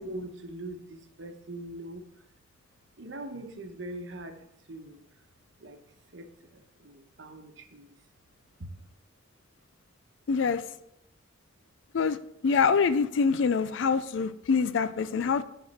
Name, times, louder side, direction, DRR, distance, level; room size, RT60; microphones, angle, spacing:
voice 1, 0.0-2.0 3.0-4.3 4.7-5.0 5.6-5.8 6.1-6.3 6.5-7.9, right 1 dB, 70° right, 6 dB, 1.0 m, -41 dB
voice 2, 10.3-10.6 11.9-12.2 12.4-15.4, left 5 dB, 75° left, 13 dB, 0.4 m, -25 dB
11.0 x 4.1 x 4.2 m, 0.77 s
head